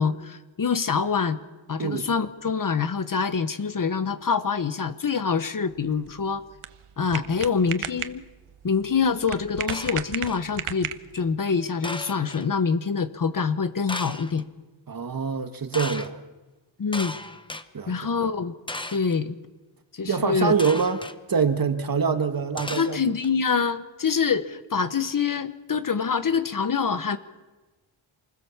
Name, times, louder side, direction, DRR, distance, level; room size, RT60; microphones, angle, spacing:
voice 1, 0.0-1.4 1.7-6.4 7.0-8.2 8.6-14.4 16.8-17.1 17.9-18.5 18.9-19.4 19.9-20.5 22.7-27.2, left 5 dB, 40° left, 11 dB, 1.2 m, -25 dB
sound 1, 5.7-11.3, right 10 dB, 85° right, 1.2 m, -36 dB
sound 2, 9.7-10.5 11.8-12.5 13.9-14.4 15.7-16.1 16.9-17.6 18.7-19.2 20.6-21.2 22.6-23.3, left 2 dB, 10° left, 0.9 m, -35 dB
voice 2, 14.9-16.2 17.7-18.0 20.1-23.0, right 6 dB, 45° right, 8 dB, 1.7 m, -25 dB
28.0 x 20.5 x 7.3 m, 1.2 s
wide cardioid pair, 150°, 49 cm